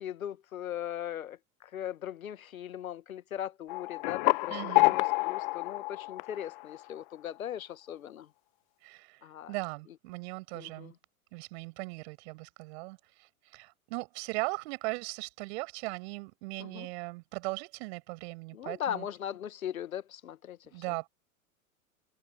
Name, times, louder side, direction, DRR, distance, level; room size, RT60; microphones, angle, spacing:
voice 1, 0.0-8.3 9.2-9.5 10.5-10.9 16.6-16.9 18.5-20.8, left 10 dB, 65° left, 1.6 m, -39 dB
sound 1, 3.7-7.0, left 27 dB, 35° left, 0.7 m, -28 dB
voice 2, 4.5-5.0 8.8-10.9 11.3-19.1 20.7-21.1, right 26 dB, 45° right, 7.3 m, -39 dB
figure-of-eight pair, 100°, 44 cm